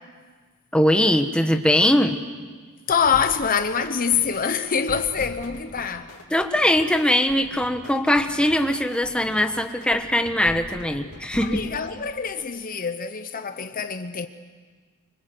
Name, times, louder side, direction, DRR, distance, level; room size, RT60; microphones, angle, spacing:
voice 1, 0.7-2.2 6.3-11.6, left 1 dB, 5° left, 1.3 m, -21 dB
sound 1, 2.9-11.7, left 1 dB, 80° left, 3.1 m, -41 dB
voice 2, 2.9-6.1 11.4-14.3, left 6 dB, 40° left, 0.9 m, -25 dB
25.5 x 25.0 x 7.9 m
head